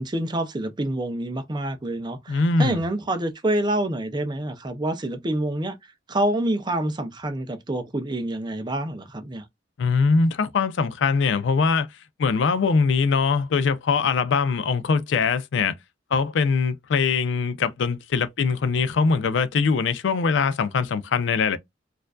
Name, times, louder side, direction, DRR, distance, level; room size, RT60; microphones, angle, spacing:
voice 1, 0.0-5.8 6.1-9.4, right 1 dB, 25° right, 0.5 m, -27 dB
voice 2, 2.3-2.8 9.8-11.9 12.2-15.7 16.1-21.6, left 5 dB, 75° left, 0.4 m, -22 dB
4.3 x 2.5 x 2.3 m
head